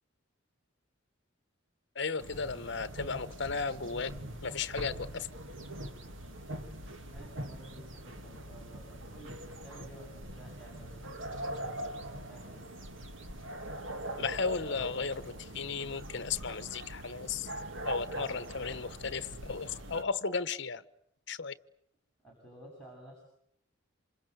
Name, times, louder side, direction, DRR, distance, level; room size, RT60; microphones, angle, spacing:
voice 1, 1.9-4.1 4.4-5.3 14.2-17.5 17.8-20.8 21.3-21.5, left 5 dB, 55° left, 1.1 m, -35 dB
sound 1, 2.2-20.0, right 1 dB, 70° right, 2.3 m, -42 dB
voice 2, 7.1-12.0 12.3-12.6 22.2-23.2, right 1 dB, 5° left, 7.8 m, -53 dB
27.5 x 26.5 x 8.1 m
head